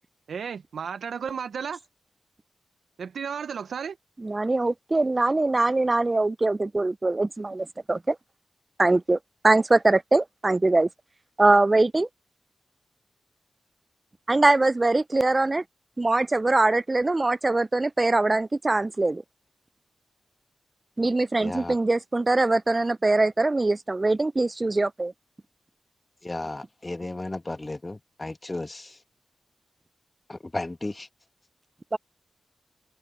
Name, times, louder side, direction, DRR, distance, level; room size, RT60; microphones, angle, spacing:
voice 1, 0.3-1.8 3.0-4.0, right 7 dB, 90° right, 0.6 m, -33 dB
voice 2, 4.2-8.2 8.8-9.2 9.4-10.9 11.4-12.1 14.3-15.6 16.0-19.2 21.0-25.1 31.9-32.0, right 2 dB, 35° right, 0.3 m, -22 dB
voice 3, 21.4-21.8 26.2-28.9 30.3-31.1, left 2 dB, 30° left, 1.6 m, -34 dB
open air
cardioid pair, 50°, 0 cm